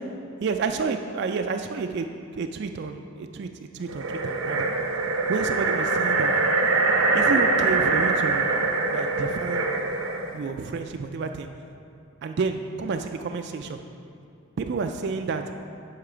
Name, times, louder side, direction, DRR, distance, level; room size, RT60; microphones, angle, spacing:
voice 1, 0.4-2.1 2.3-3.5 3.7-4.7 5.3-6.3 7.1-8.5 8.9-9.7 10.3-11.5 12.2-13.8 14.6-15.4, right 4 dB, 50° right, 6 dB, 0.3 m, -30 dB
sound 1, 3.9-10.3, right 3 dB, 80° right, 0.7 m, -23 dB
8.7 x 5.9 x 4.9 m, 2.5 s
head